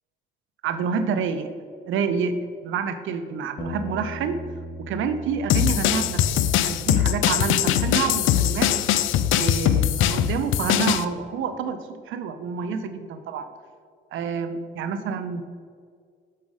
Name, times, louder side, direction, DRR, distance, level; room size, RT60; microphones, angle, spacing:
voice 1, 0.6-1.5 1.9-2.4 2.6-4.4 4.8-6.2 6.6-8.7 9.4-13.5 14.1-15.4, right 6 dB, 80° right, 9 dB, 0.5 m, -28 dB
Bass guitar, 3.6-9.8, equal, 35° left, 0.7 m, -40 dB
sound 1, 5.5-11.0, left 11 dB, 80° left, 0.4 m, -21 dB
6.1 x 5.6 x 4.8 m, 2.1 s
cardioid pair, 90°, 20 cm